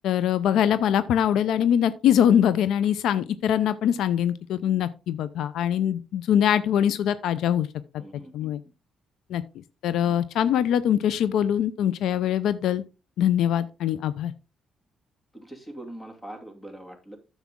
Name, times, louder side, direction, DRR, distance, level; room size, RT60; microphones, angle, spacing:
voice 1, 0.0-7.7 8.3-8.6 9.3-9.4 9.8-12.8 13.2-14.3, left 9 dB, 80° left, 16 dB, 0.5 m, -23 dB
voice 2, 8.0-8.5 10.0-10.2 15.3-17.2, right 1 dB, 10° left, 5 dB, 2.5 m, -42 dB
9.4 x 7.1 x 3.6 m, 0.31 s
cardioid pair, 90°, 0 cm